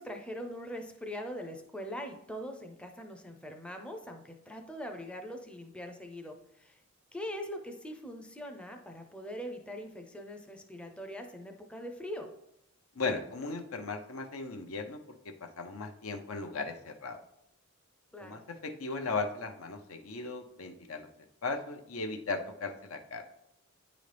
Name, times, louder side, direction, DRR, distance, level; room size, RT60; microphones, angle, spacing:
voice 1, 0.0-6.8 7.1-12.3 18.1-18.4, equal, 5° left, 4 dB, 0.5 m, -42 dB
voice 2, 12.9-17.2 18.2-21.1 21.4-23.2, left 3 dB, 80° left, 6 dB, 0.7 m, -37 dB
9.2 x 3.9 x 3.4 m, 0.80 s
head